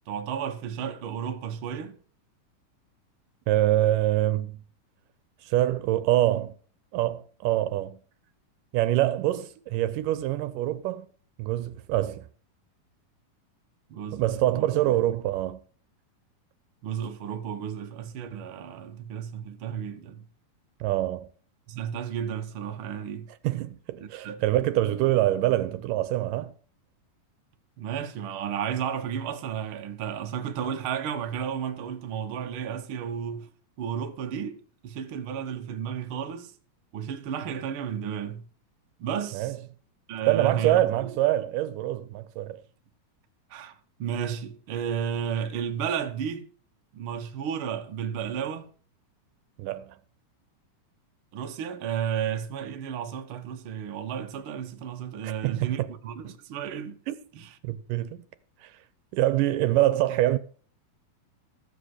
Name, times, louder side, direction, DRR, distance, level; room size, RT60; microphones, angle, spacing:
voice 1, 0.1-2.0 13.9-15.1 16.8-20.2 21.7-23.3 24.0-24.4 27.8-33.5 33.8-36.5 36.9-38.5 39.0-39.5 40.1-41.2 43.5-46.5 46.9-48.7 51.3-57.0 57.3-57.5, right 8 dB, 60° right, 1.4 m, -33 dB
voice 2, 3.5-4.6 5.4-6.5 6.9-8.0 8.7-11.1 11.4-12.3 14.1-15.6 20.8-21.3 23.4-26.5 39.3-39.6 40.3-42.6 49.6-50.0 55.2-55.9 57.1-57.2 57.6-58.2 58.6-58.7 59.1-60.4, right 14 dB, 75° right, 2.3 m, -25 dB
14.0 x 7.6 x 6.4 m
omnidirectional pair, 4.0 m